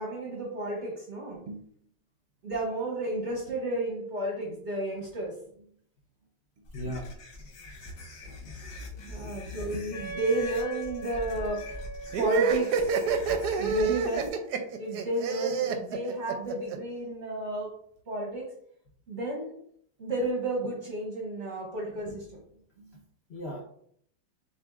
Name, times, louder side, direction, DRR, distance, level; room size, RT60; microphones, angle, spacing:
voice 1, 0.0-1.6 2.4-5.4 9.0-11.8 12.2-12.8 13.6-14.3 14.8-17.7 18.1-18.5 19.1-19.6 20.0-22.4, right 1 dB, 55° right, -1 dB, 0.8 m, -32 dB
sound 1, 6.6-14.3, left 2 dB, 55° left, 1.1 m, -43 dB
voice 2, 6.7-7.1 8.4-8.6 9.1-9.4 13.3-13.4 23.3-23.6, equal, 70° left, -2 dB, 0.6 m, -38 dB
Wind instrument woodwind instrument, 9.9-15.5, right 1 dB, 15° right, 0.9 m, -42 dB
sound 2, 12.1-16.8, right 6 dB, 75° right, 1.0 m, -28 dB
6.7 x 2.7 x 2.4 m, 0.64 s
omnidirectional pair, 2.1 m